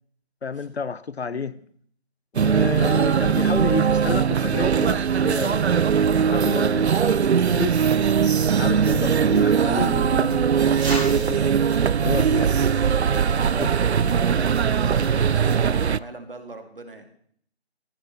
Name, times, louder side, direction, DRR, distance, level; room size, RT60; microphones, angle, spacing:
voice 1, 0.4-1.6 2.3-5.7 6.3-11.5 12.0-12.5 13.6-13.7, left 5 dB, 75° left, 0.7 m, -31 dB
sound 1, 2.3-16.0, right 7 dB, 75° right, 0.5 m, -20 dB
sound 2, 8.4-8.5 8.9-9.0 9.3-9.5 9.8-9.9 10.3-10.9 11.2-11.3 11.7-12.3 12.7-12.8 13.1-13.2 13.6-13.7 14.1-14.7 15.0-15.1 15.5-15.7, left 2 dB, 50° left, 2.8 m, -49 dB
sound 3, 8.5-13.5, right 1 dB, 5° right, 3.0 m, -39 dB
voice 2, 13.3-17.1, right 2 dB, 55° right, 2.3 m, -39 dB
17.0 x 15.0 x 3.4 m
figure-of-eight pair, 180°, 32 cm